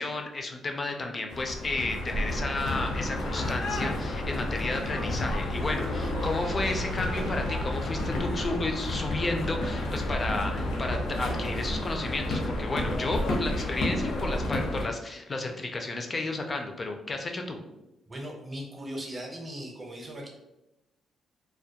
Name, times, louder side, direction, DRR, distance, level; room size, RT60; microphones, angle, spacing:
voice 1, 0.0-17.6, left 2 dB, 30° left, 3 dB, 0.3 m, -32 dB
sound 1, 1.3-14.9, left 1 dB, 85° left, 0.6 m, -31 dB
sound 2, 5.4-9.6, right 2 dB, 80° right, 0.5 m, -44 dB
voice 2, 18.1-20.3, equal, 25° right, 0 dB, 0.6 m, -38 dB
2.2 x 2.1 x 2.7 m, 0.95 s
cardioid pair, 105°, 0 cm